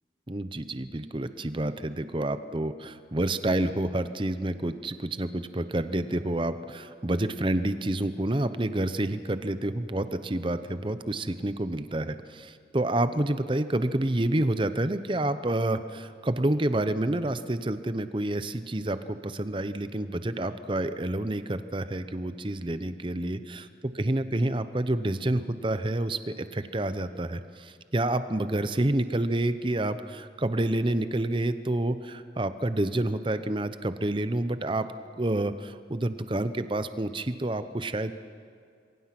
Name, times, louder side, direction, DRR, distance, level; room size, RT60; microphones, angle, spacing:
voice 1, 0.3-23.7 23.9-34.9 35.2-38.1, right 1 dB, 30° right, 11 dB, 0.8 m, -28 dB
27.0 x 22.5 x 6.0 m, 2.3 s
head